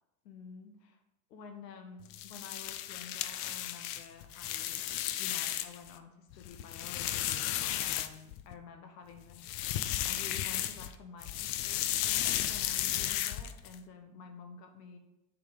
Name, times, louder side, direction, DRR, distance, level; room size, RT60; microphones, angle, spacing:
voice 1, 0.2-1.0 1.3-4.9 5.2-9.5 10.1-15.0, left 5 dB, 85° left, 5 dB, 1.0 m, -50 dB
sound 1, 2.1-5.9 6.3-8.5 9.3-10.9 11.2-13.7, left 12 dB, 50° left, 0.5 m, -34 dB
6.8 x 3.7 x 5.3 m, 0.93 s
supercardioid pair, 110°, 47 cm